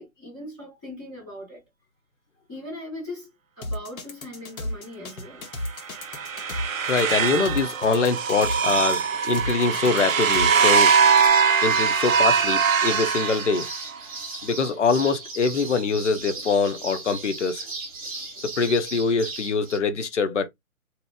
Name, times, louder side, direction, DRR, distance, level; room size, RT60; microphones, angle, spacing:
voice 1, 0.0-1.6 2.5-3.3 3.6-5.5, left 1 dB, 5° left, 0.6 m, -39 dB
sound 1, 3.6-11.3, left 1 dB, 70° left, 1.1 m, -34 dB
sound 2, 5.7-14.0, right 6 dB, 65° right, 0.6 m, -22 dB
voice 2, 6.9-10.9 11.6-13.7 14.4-17.7 18.4-20.5, left 4 dB, 55° left, 0.7 m, -24 dB
sound 3, 10.7-19.8, right 3 dB, 25° right, 0.8 m, -36 dB
2.8 x 2.1 x 3.4 m
figure-of-eight pair, 155°, 43 cm